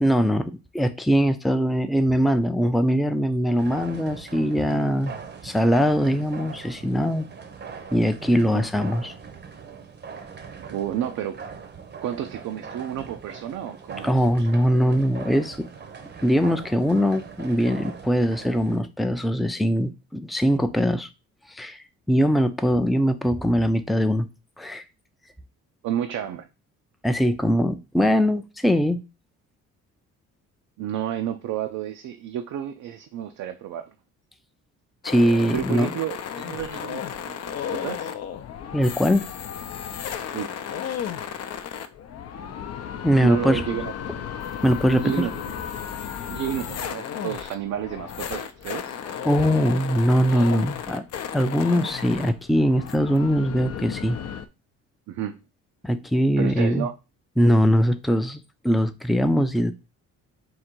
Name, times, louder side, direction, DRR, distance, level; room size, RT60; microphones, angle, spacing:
voice 1, 0.0-5.1 5.4-7.3 7.9-9.1 14.0-15.7 16.2-21.1 21.5-21.8 22.1-24.3 24.6-24.8 27.0-29.0 35.0-35.9 38.7-39.2 43.0-43.6 44.6-45.1 49.0-51.0 51.3-54.2 55.8-56.9 57.4-59.7, equal, ahead, 0.4 m, -21 dB
sound 1, 3.5-18.8, right 6 dB, 35° right, 0.7 m, -41 dB
voice 2, 10.7-11.4 12.0-14.1 25.8-26.5 30.8-33.9 35.5-38.1 40.3-40.5 43.2-44.3 44.9-45.6 46.3-48.9 55.1-55.4 56.4-57.0, right 10 dB, 75° right, 0.5 m, -31 dB
sound 2, 35.0-54.5, left 8 dB, 55° left, 0.6 m, -34 dB
3.9 x 2.6 x 4.4 m
cardioid pair, 90°, 30 cm